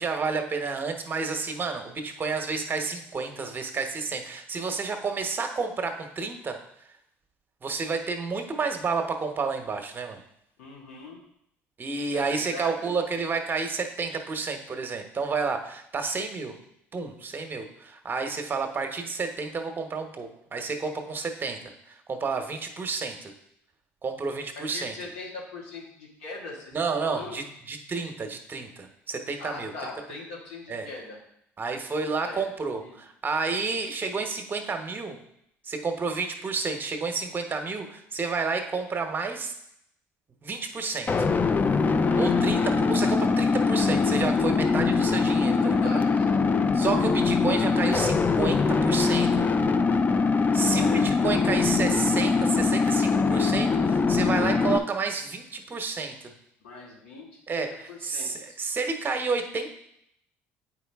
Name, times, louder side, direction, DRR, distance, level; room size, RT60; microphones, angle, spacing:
voice 1, 0.0-6.6 7.6-10.2 11.8-16.6 16.9-23.3 24.0-25.0 26.7-29.9 30.7-30.9 31.6-35.2 35.6-39.5 40.4-41.1 42.2-46.0 46.7-49.4 50.5-56.3 57.5-59.7, right 4 dB, 35° right, 5 dB, 1.0 m, -30 dB
voice 2, 10.6-11.2 12.1-12.7 24.6-26.8 27.0-27.3 29.4-31.2 32.2-32.4 32.8-33.0 42.0-42.6 45.5-46.3 50.7-51.1 56.6-58.6, left 3 dB, 90° left, -3 dB, 1.9 m, -41 dB
sound 1, 41.1-54.8, left 4 dB, 25° left, 0.5 m, -23 dB
8.2 x 4.7 x 3.5 m, 0.75 s
supercardioid pair, 75°, 6 cm